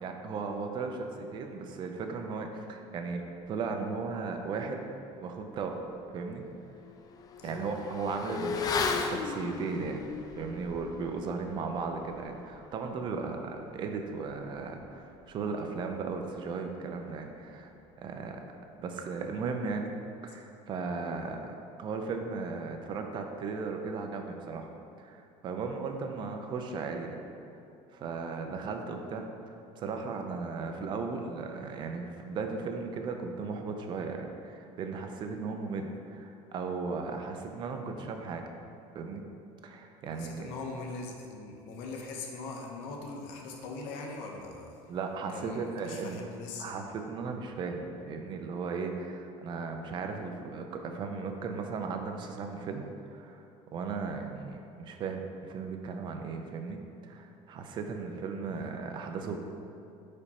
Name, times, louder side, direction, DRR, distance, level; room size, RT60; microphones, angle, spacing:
voice 1, 0.0-4.9 5.2-5.8 6.1-6.4 7.4-10.0 10.4-17.7 18.0-18.4 18.8-19.9 20.2-24.7 25.0-27.2 27.9-38.4 38.9-39.3 39.6-40.5 44.9-46.2 46.6-52.8 53.1-59.4, right 4 dB, 40° right, 4 dB, 0.5 m, -36 dB
Motorcycle / Accelerating revving vroom, 5.6-5.7 6.1-16.1 16.3-16.5, left 5 dB, 30° left, 0.4 m, -38 dB
voice 2, 40.2-44.7 45.3-46.7 58.5-58.7, left 3 dB, 80° left, 1 dB, 0.9 m, -41 dB
5.4 x 5.1 x 4.2 m, 2.7 s
cardioid pair, 145°, 12 cm